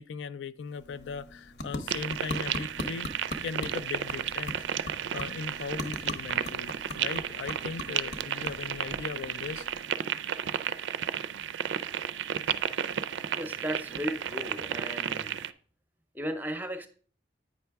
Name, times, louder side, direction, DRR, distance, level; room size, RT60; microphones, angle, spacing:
voice 1, 0.0-3.1 3.4-4.6 5.1-9.7, left 5 dB, 85° left, 0.4 m, -38 dB
sound 1, 0.6-10.1, left 2 dB, 70° left, 0.9 m, -41 dB
sound 2, 1.9-15.5, right 9 dB, 85° right, 0.4 m, -33 dB
voice 2, 13.3-15.3 16.1-16.9, equal, 10° right, 0.6 m, -35 dB
8.7 x 5.5 x 3.4 m
head